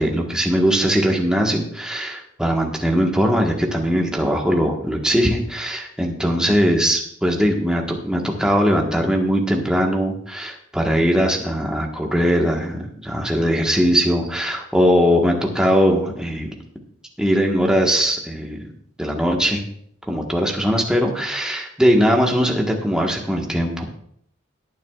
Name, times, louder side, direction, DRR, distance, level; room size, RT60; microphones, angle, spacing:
voice 1, 0.0-16.5 17.2-18.6 19.0-19.6 20.1-23.9, equal, 5° right, 0 dB, 1.4 m, -20 dB
18.0 x 9.5 x 2.4 m, 0.67 s
head